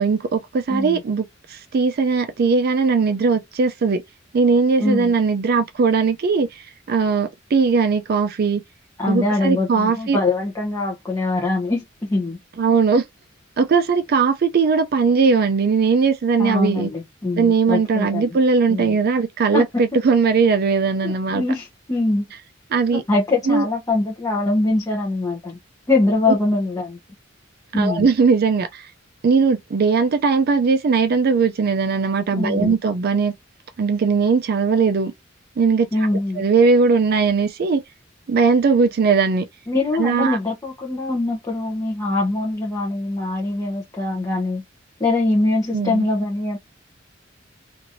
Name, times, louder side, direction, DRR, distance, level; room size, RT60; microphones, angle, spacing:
voice 1, 0.0-4.0 4.3-8.6 9.1-10.2 12.6-13.0 13.6-16.9 17.4-21.4 22.7-23.0 23.5-23.6 27.7-28.9 29.2-33.3 33.8-35.1 35.6-35.9 36.4-37.8 38.3-39.5 40.0-40.4 45.7-46.1, right 5 dB, 55° right, 0.4 m, -19 dB
voice 2, 0.7-1.0 4.8-5.1 9.0-12.4 16.4-18.4 18.7-19.0 19.5-19.8 21.0-22.2 22.9-25.6 25.9-27.0 27.7-28.1 32.4-32.7 35.9-36.4 39.7-44.6 45.0-46.6, left 2 dB, 20° left, 0.8 m, -23 dB
2.9 x 2.5 x 2.6 m
head